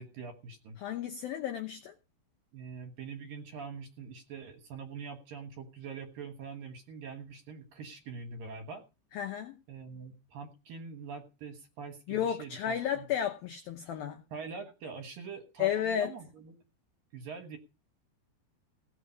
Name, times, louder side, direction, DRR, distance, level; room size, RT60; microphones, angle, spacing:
voice 1, 0.0-0.8 2.5-8.8 9.7-13.1 14.3-16.6 17.1-17.6, right 5 dB, 65° right, 2.4 m, -44 dB
voice 2, 0.8-1.9 9.1-9.5 12.1-14.2 15.6-16.1, left 9 dB, 90° left, 2.0 m, -32 dB
17.5 x 7.9 x 5.2 m
omnidirectional pair, 5.6 m